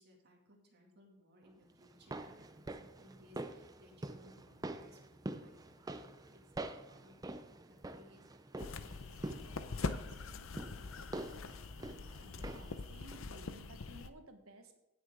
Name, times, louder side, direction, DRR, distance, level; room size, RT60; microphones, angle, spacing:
voice 1, 0.0-8.2 8.8-11.4, equal, 50° right, 0 dB, 2.3 m, -63 dB
sound 1, 1.8-12.8 13.1-13.2, right 2 dB, 15° right, 0.5 m, -46 dB
sound 2, 8.6-14.1, left 3 dB, 70° left, 0.7 m, -43 dB
voice 2, 12.2-14.8, right 2 dB, 80° right, 6 dB, 1.4 m, -56 dB
17.0 x 6.6 x 3.7 m, 0.89 s
head